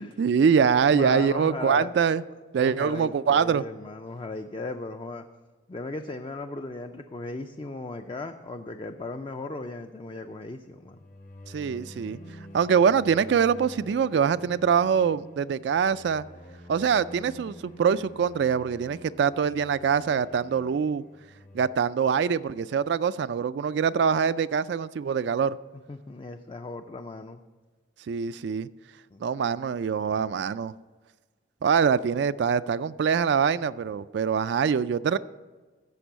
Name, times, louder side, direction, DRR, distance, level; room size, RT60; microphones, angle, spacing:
voice 1, 0.0-2.2 2.5-3.6 11.5-12.2 12.5-16.2 16.7-21.0 21.5-25.6 28.1-28.7 29.2-30.7 31.6-35.2, right 6 dB, 65° right, 0.3 m, -24 dB
voice 2, 0.9-1.9 2.6-5.2 5.7-11.0 25.9-27.4 29.1-29.3, left 2 dB, 25° left, 0.4 m, -36 dB
sound 1, 10.7-21.7, equal, 40° left, 0.9 m, -47 dB
15.0 x 5.4 x 8.1 m
head